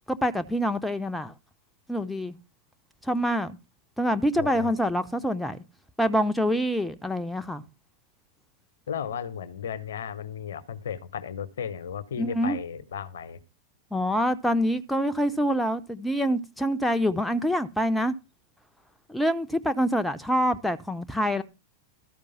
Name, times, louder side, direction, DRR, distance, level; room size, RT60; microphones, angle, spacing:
voice 1, 0.1-1.3 1.9-2.4 3.0-3.6 4.0-5.6 6.0-7.6 12.2-12.6 13.9-18.1 19.1-21.4, equal, 5° left, 0.6 m, -26 dB
voice 2, 4.4-4.7 8.9-13.4, left 8 dB, 65° left, 0.9 m, -35 dB
13.0 x 5.2 x 5.4 m
figure-of-eight pair, 90°, 0 cm